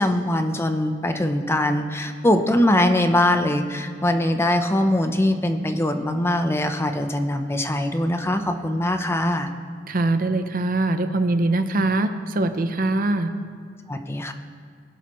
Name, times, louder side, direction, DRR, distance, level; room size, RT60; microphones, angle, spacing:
voice 1, 0.0-9.5 13.9-14.3, left 1 dB, 15° left, 7 dB, 0.6 m, -22 dB
voice 2, 9.9-13.3, right 2 dB, 50° right, 9 dB, 0.7 m, -22 dB
22.0 x 10.5 x 3.1 m, 2.2 s
head